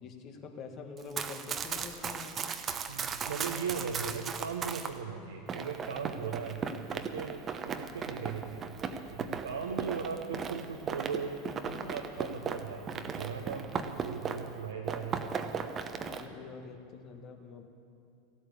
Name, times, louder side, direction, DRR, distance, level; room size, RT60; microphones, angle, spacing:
voice 1, 0.0-2.5 9.2-9.4 11.7-11.9 15.9-17.7, left 5 dB, 45° left, 5 dB, 1.7 m, -46 dB
Run, 1.0-4.9 5.5-14.6 14.9-16.2, right 6 dB, 30° right, 0.9 m, -37 dB
voice 2, 2.9-6.7 6.9-8.7 9.1-15.3, right 6 dB, 80° right, 1 dB, 0.9 m, -38 dB
15.0 x 8.4 x 8.5 m, 2.5 s
figure-of-eight pair, 85°, 0 cm